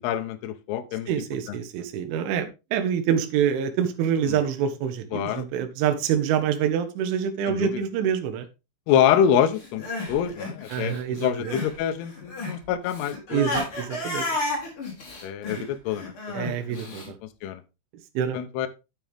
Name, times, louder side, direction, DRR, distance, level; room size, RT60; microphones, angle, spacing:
voice 1, 0.0-1.1 5.1-5.5 7.5-7.8 8.9-9.8 10.1-13.4 15.2-17.0 17.4-17.6 18.3-18.7, left 9 dB, 80° left, 9 dB, 2.4 m, -26 dB
voice 2, 1.1-8.5 10.7-11.5 13.3-14.3 15.6-15.7 16.3-17.2 18.1-18.4, right 8 dB, 80° right, 8 dB, 3.5 m, -26 dB
Crying sobbing, 9.6-11.8 12.0-17.1, left 2 dB, 30° left, 3.1 m, -32 dB
9.0 x 8.4 x 3.5 m, 0.26 s
omnidirectional pair, 5.7 m